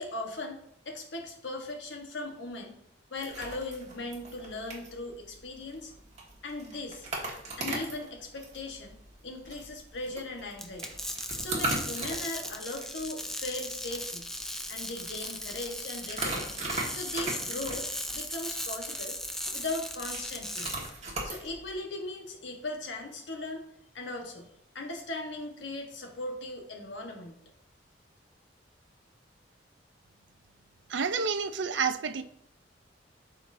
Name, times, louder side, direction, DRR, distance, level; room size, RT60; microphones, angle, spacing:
voice 1, 0.0-2.8 3.1-5.9 6.4-7.1 7.6-9.0 9.2-10.9 11.4-14.3 14.7-16.6 16.9-19.2 19.5-20.7 21.2-23.7 23.9-24.5 24.7-27.4, left 2 dB, 80° left, 3 dB, 1.3 m, -38 dB
sound 1, 3.2-21.7, right 2 dB, 40° right, 1.7 m, -40 dB
sound 2, 10.6-20.9, left 1 dB, 5° left, 0.5 m, -37 dB
voice 2, 30.9-32.2, right 5 dB, 75° right, 11 dB, 0.5 m, -29 dB
12.0 x 4.5 x 2.7 m, 0.73 s
head